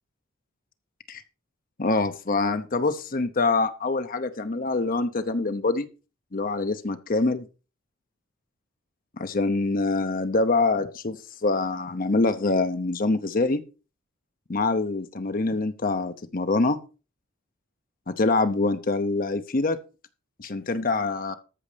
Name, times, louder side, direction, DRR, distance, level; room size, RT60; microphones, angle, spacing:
voice 1, 1.8-5.9 6.3-7.5 9.2-11.2 11.4-13.6 14.5-16.8 18.1-19.8 20.4-21.4, left 3 dB, 45° left, 9 dB, 0.8 m, -25 dB
13.5 x 6.5 x 5.1 m, 0.33 s
head